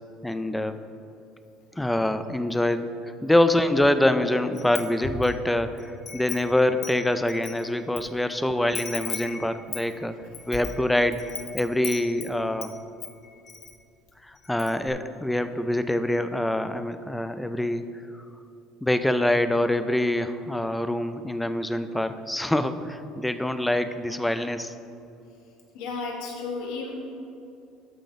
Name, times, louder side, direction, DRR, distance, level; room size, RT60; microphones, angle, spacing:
voice 1, 0.2-0.8 1.8-10.1 10.5-11.3 11.5-12.7 14.2-18.2 18.8-24.7, left 1 dB, 5° left, 10 dB, 0.3 m, -25 dB
Wind chime, 4.6-5.4 5.8-8.0 8.3-8.4 8.7-12.7 13.0-13.7 14.1-14.2 14.4-14.9, left 6 dB, 30° left, 0.7 m, -37 dB
voice 2, 25.7-26.9, left 4 dB, 80° left, -1 dB, 1.9 m, -33 dB
13.5 x 5.0 x 3.9 m, 2.7 s
cardioid pair, 155°, 0 cm